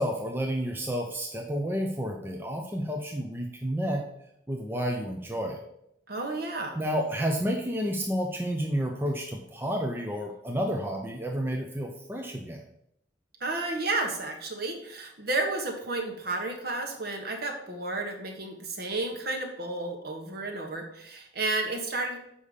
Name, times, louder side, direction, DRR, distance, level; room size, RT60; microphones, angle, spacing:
voice 1, 0.0-4.0 4.5-5.6 6.7-12.6, equal, 10° right, 1 dB, 0.6 m, -30 dB
voice 2, 6.1-6.8 13.4-22.2, right 2 dB, 50° right, 2 dB, 1.4 m, -32 dB
6.9 x 5.4 x 5.0 m, 0.77 s
head